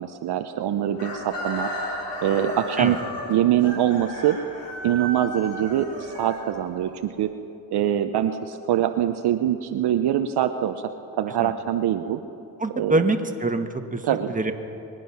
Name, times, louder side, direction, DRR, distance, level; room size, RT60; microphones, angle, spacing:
voice 1, 0.0-1.7 2.2-3.0 3.3-4.4 4.8-7.3 7.7-10.8 11.1-12.2 12.8-13.0 14.0-14.3, right 11 dB, 60° right, 8 dB, 0.8 m, -23 dB
Chicken rooster, 0.9-6.9, left 1 dB, 75° left, 3.7 m, -34 dB
voice 2, 12.6-14.5, right 2 dB, 20° right, 6 dB, 1.5 m, -25 dB
24.5 x 9.2 x 5.7 m, 2.8 s
supercardioid pair, 55°, 43 cm